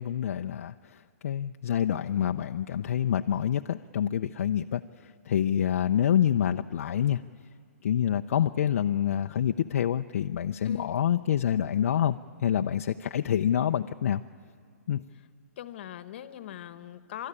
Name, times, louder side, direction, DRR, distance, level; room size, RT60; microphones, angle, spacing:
voice 1, 0.0-7.2 7.8-14.2 14.9-15.0, left 9 dB, 60° left, 6 dB, 0.5 m, -27 dB
voice 2, 10.6-10.9 15.6-17.3, left 11 dB, 45° left, 12 dB, 1.1 m, -41 dB
29.5 x 13.5 x 9.9 m, 2.1 s
hypercardioid pair, 170°, 8 cm